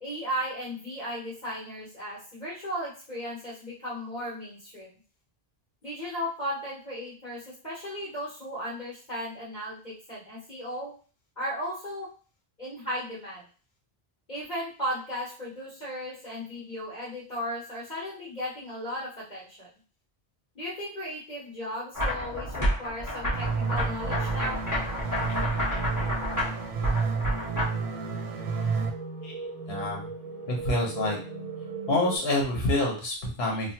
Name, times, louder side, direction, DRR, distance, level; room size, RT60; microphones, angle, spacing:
voice 1, 0.0-4.9 5.8-10.9 11.4-12.1 12.6-13.5 14.3-19.7 20.5-24.6, equal, 45° left, -9 dB, 1.2 m, -36 dB
sound 1, 21.9-27.6, equal, 20° left, 1.0 m, -30 dB
sound 2, 23.3-28.9, right 5 dB, 90° right, 0.8 m, -31 dB
sound 3, 26.9-32.2, right 3 dB, 45° right, 0.6 m, -39 dB
voice 2, 29.7-30.1 30.5-31.2 31.9-33.7, left 2 dB, 75° left, -1 dB, 1.1 m, -27 dB
3.0 x 2.1 x 2.8 m, 0.38 s
omnidirectional pair, 1.0 m